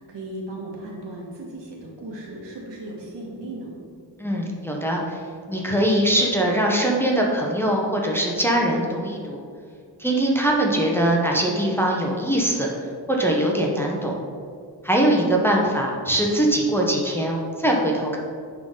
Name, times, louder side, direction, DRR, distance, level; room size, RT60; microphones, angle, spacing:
voice 1, 0.0-3.7, right 1 dB, 75° right, -2 dB, 1.8 m, -36 dB
voice 2, 4.2-5.2 5.5-9.4 10.0-12.7 13.1-14.2 14.8-18.2, right 1 dB, 5° left, -2 dB, 0.8 m, -22 dB
10.0 x 3.9 x 3.8 m, 2.2 s
wide cardioid pair, 135°, 43 cm